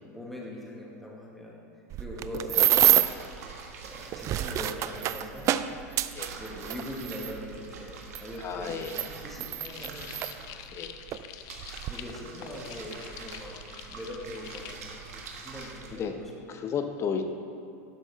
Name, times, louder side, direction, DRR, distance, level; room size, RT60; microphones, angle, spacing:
voice 1, 0.0-1.6 2.0-2.7 3.8-5.5 6.3-10.2 11.8-13.6 13.9-15.0 15.4-16.3, left 1 dB, 5° left, -4 dB, 1.8 m, -41 dB
sound 1, 1.9-3.3 4.0-7.3 8.2-8.3 8.8-10.3 11.1-11.2 11.6-11.9, right 13 dB, 40° right, 0.4 m, -26 dB
sound 2, 2.5-16.1, right 4 dB, 80° right, 1.4 m, -45 dB
voice 2, 8.4-9.0 10.7-10.9 15.6-16.1 16.5-17.2, left 6 dB, 35° left, 7 dB, 0.9 m, -33 dB
sound 3, 9.6-14.8, left 11 dB, 50° left, 0.5 m, -46 dB
11.5 x 6.2 x 4.1 m, 2.5 s
hypercardioid pair, 105°, 8 cm